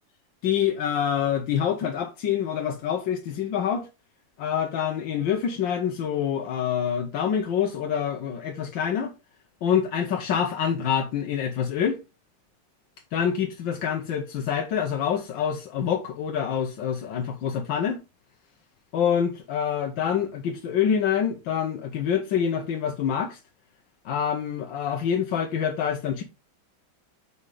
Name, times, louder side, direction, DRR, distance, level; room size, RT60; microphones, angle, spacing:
voice 1, 0.4-3.9 4.4-9.1 9.6-12.0 13.1-18.0 18.9-23.4 24.0-26.2, left 8 dB, 90° left, 1.6 m, -26 dB
5.6 x 5.6 x 4.8 m
omnidirectional pair, 2.0 m